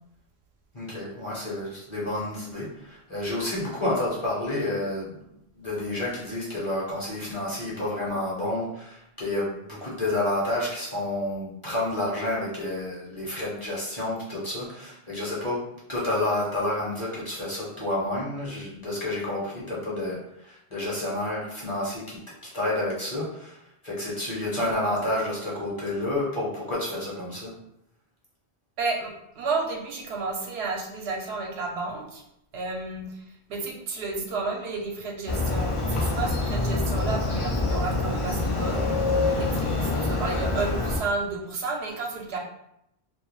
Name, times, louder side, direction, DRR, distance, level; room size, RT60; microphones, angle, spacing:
voice 1, 0.7-5.2 5.5-22.2 22.5-27.6, left 1 dB, 30° left, -7 dB, 0.8 m, -30 dB
voice 2, 28.8-32.2 32.5-33.1 33.5-42.4, right 3 dB, 80° right, 0 dB, 0.8 m, -32 dB
Motorcycle, 35.3-41.0, left 2 dB, 55° left, 0.3 m, -26 dB
2.2 x 2.2 x 3.0 m, 0.79 s
omnidirectional pair, 1.1 m